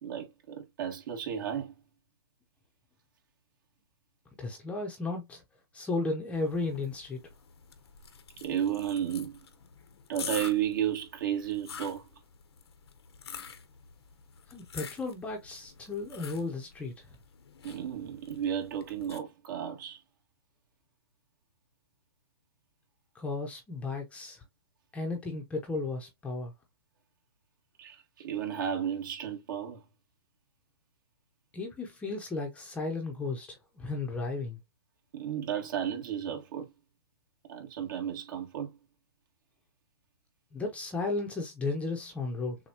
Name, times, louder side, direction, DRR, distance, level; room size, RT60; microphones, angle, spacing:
voice 1, 0.0-1.7 8.4-9.4 10.1-12.1 17.6-20.0 27.8-29.8 35.1-36.7 37.5-38.7, right 9 dB, 50° right, 1.8 m, -33 dB
voice 2, 4.4-5.4 5.7-7.2 14.5-17.1 23.1-24.4 24.9-26.5 31.5-34.6 40.5-42.6, left 3 dB, 10° left, 0.8 m, -34 dB
sound 1, 6.3-19.2, left 7 dB, 80° left, 1.0 m, -47 dB
6.7 x 2.3 x 2.9 m
hypercardioid pair, 145°, 13 cm